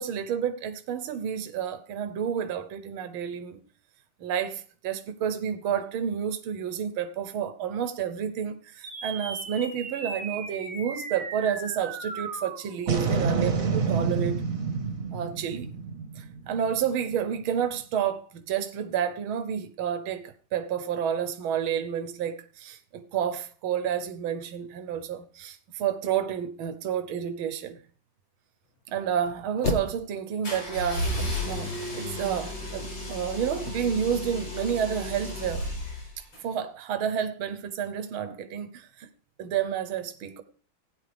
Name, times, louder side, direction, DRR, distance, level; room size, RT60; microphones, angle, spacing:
voice 1, 0.0-3.6 4.2-14.4 15.1-15.7 16.2-27.8 28.9-31.1 31.5-35.8 36.4-39.1 39.4-40.4, right 8 dB, 80° right, 1.8 m, -30 dB
sound 1, 8.8-17.4, right 5 dB, 45° right, 1.7 m, -31 dB
sound 2, 29.2-30.5 30.8-32.4 32.7-32.8 33.0-33.1 33.5-34.0, left 3 dB, 35° left, 1.5 m, -34 dB
sound 3, 30.4-36.4, left 1 dB, 65° left, 5.9 m, -33 dB
16.0 x 9.9 x 3.4 m
omnidirectional pair, 2.2 m